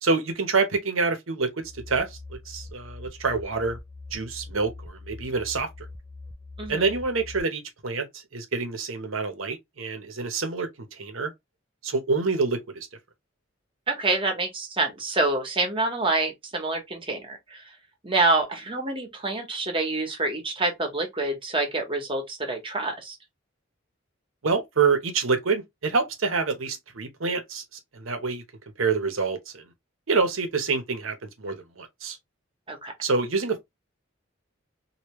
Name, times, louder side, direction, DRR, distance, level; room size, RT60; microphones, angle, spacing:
voice 1, 0.0-1.5 1.9-2.2 2.5-3.8 4.1-5.7 6.7-8.1 8.3-10.7 11.0-11.3 11.8-12.9 24.4-27.6 27.9-28.4 28.8-29.6 30.1-32.2 33.0-33.6, right 4 dB, 85° right, 1.0 m, -26 dB
sound 1, 1.6-7.4, left 2 dB, 15° left, 0.3 m, -43 dB
voice 2, 6.6-6.9 13.9-17.6 18.0-23.2 32.7-32.9, right 2 dB, 25° right, 1.1 m, -27 dB
3.1 x 2.8 x 3.0 m
head